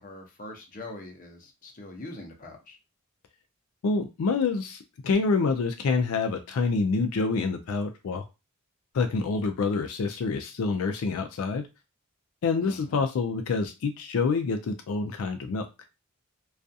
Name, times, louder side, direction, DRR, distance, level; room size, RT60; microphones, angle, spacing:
voice 1, 0.0-2.8 12.6-13.0, left 2 dB, 40° left, 2 dB, 0.6 m, -43 dB
voice 2, 3.8-8.2 8.9-11.7 12.4-15.7, left 4 dB, 85° left, 6 dB, 0.4 m, -27 dB
2.3 x 2.3 x 2.6 m, 0.26 s
head